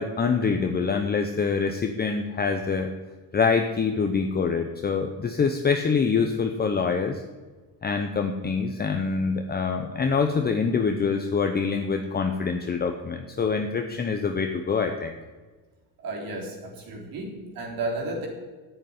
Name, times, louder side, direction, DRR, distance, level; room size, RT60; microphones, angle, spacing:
voice 1, 0.0-2.9 3.3-7.2 7.8-15.1, left 5 dB, 25° left, 5 dB, 0.8 m, -25 dB
voice 2, 16.0-18.3, right 2 dB, 60° right, 0 dB, 3.7 m, -33 dB
9.6 x 8.1 x 9.4 m, 1.3 s
cardioid pair, 125°, 39 cm